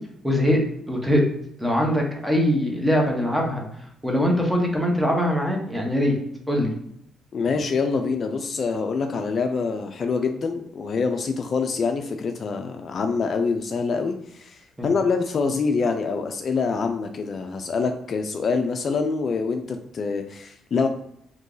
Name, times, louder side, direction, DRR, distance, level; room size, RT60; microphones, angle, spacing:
voice 1, 0.2-0.6 0.9-1.2 1.6-3.6 4.0-6.1 6.5-6.7 14.8-14.9, equal, 5° right, 0 dB, 0.9 m, -22 dB
voice 2, 7.3-20.9, left 4 dB, 50° left, 5 dB, 0.3 m, -25 dB
2.9 x 2.6 x 3.8 m, 0.73 s
cardioid pair, 90°, 0 cm